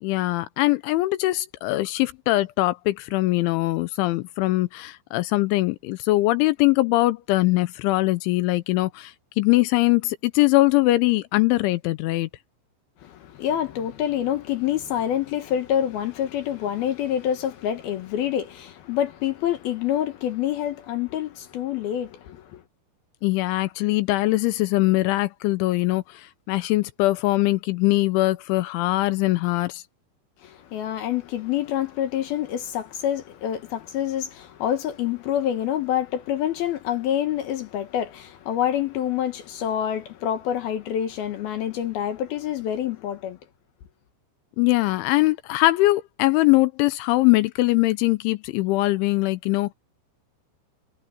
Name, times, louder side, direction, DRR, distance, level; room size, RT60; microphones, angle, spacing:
voice 1, 0.0-12.3 23.2-29.8 44.6-49.7, left 19 dB, 85° left, 3.0 m, -22 dB
voice 2, 13.0-22.6 30.4-43.4, left 10 dB, 65° left, 2.5 m, -27 dB
omnidirectional pair, 5.7 m